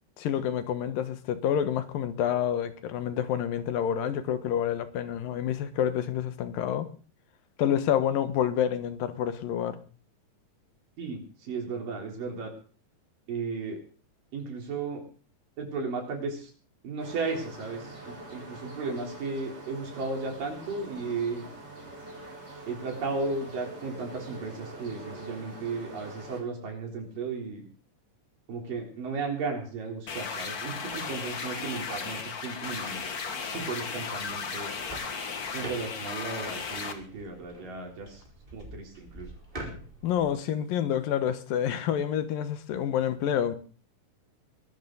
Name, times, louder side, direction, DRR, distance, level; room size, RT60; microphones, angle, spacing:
voice 1, 0.2-6.9 7.6-9.8 40.0-43.6, left 9 dB, 90° left, 3.0 m, -28 dB
voice 2, 11.0-12.5 13.3-13.8 14.3-15.0 15.6-16.5 16.8-21.5 22.7-27.7 28.5-33.0 33.4-34.7 35.5-38.2 38.5-39.3, right 4 dB, 75° right, 5.3 m, -35 dB
sound 1, 17.0-26.4, right 2 dB, 30° right, 5.9 m, -44 dB
sound 2, 30.1-36.9, left 5 dB, 50° left, 1.1 m, -35 dB
sound 3, 34.7-40.3, right 1 dB, 15° right, 4.3 m, -45 dB
22.0 x 12.5 x 4.0 m
omnidirectional pair, 3.9 m